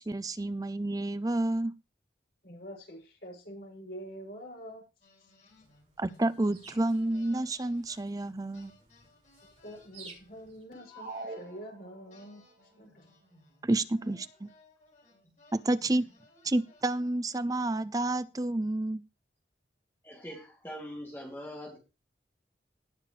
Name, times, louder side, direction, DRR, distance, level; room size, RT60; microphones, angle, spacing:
voice 1, 0.0-1.7 6.0-8.7 13.6-14.5 15.5-16.1 16.4-19.0, right 2 dB, 20° right, 0.5 m, -30 dB
voice 2, 2.4-4.8 9.6-12.4 12.8-13.0, equal, 65° left, 7.1 m, -45 dB
sound 1, 5.0-8.3 8.5-11.6 12.1-17.4, left 2 dB, 45° left, 6.3 m, -61 dB
sound 2, 5.5-10.6, right 4 dB, 40° right, 5.3 m, -56 dB
sound 3, 10.9-12.3, right 2 dB, 60° right, 2.0 m, -43 dB
voice 3, 20.0-21.8, equal, 10° left, 2.7 m, -42 dB
18.5 x 6.7 x 3.3 m
head